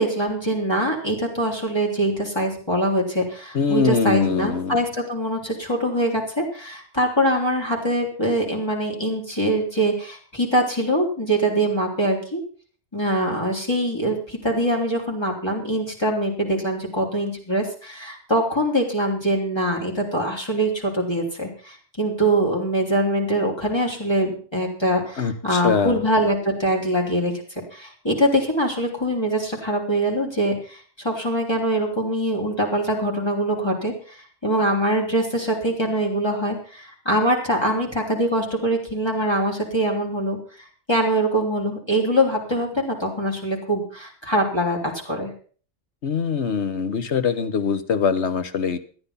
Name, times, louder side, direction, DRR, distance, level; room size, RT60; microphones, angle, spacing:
voice 1, 0.0-12.4 12.9-40.4 40.9-45.3, right 1 dB, 20° left, 0 dB, 3.4 m, -23 dB
voice 2, 3.5-4.8 25.2-26.0 46.0-48.8, left 6 dB, 65° left, 11 dB, 1.4 m, -23 dB
13.5 x 10.5 x 5.7 m, 0.41 s
omnidirectional pair, 1.3 m